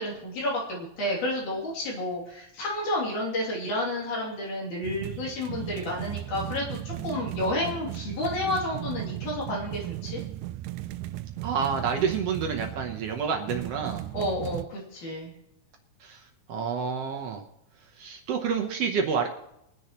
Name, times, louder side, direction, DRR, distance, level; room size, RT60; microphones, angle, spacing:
voice 1, 0.0-10.2 14.1-15.3, left 1 dB, 80° left, -3 dB, 4.3 m, -31 dB
sound 1, 4.8-14.7, right 15 dB, 90° right, 2.1 m, -36 dB
voice 2, 11.4-14.0 16.0-16.2 16.5-17.4 18.0-19.3, right 6 dB, 65° right, 2 dB, 1.7 m, -28 dB
23.0 x 9.9 x 3.0 m, 0.82 s
omnidirectional pair, 3.5 m